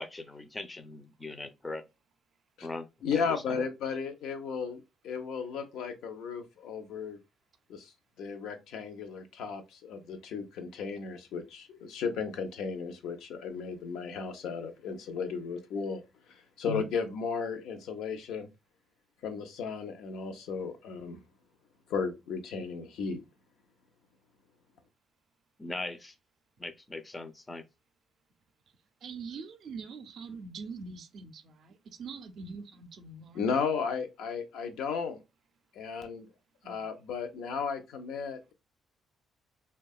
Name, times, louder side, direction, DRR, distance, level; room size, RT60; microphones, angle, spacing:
voice 1, 0.0-1.8 2.6-3.6 25.6-26.1 26.6-27.6, left 2 dB, 20° left, 0.4 m, -40 dB
voice 2, 3.0-7.2 7.7-7.9 8.2-16.0 16.3-18.5 19.2-21.2 21.9-23.2 33.3-35.2 35.7-36.3 36.6-38.5, left 5 dB, 85° left, 0.5 m, -35 dB
voice 3, 29.0-33.5 36.6-36.8, right 4 dB, 65° right, 0.4 m, -43 dB
2.7 x 2.2 x 2.2 m
cardioid pair, 90°, 0 cm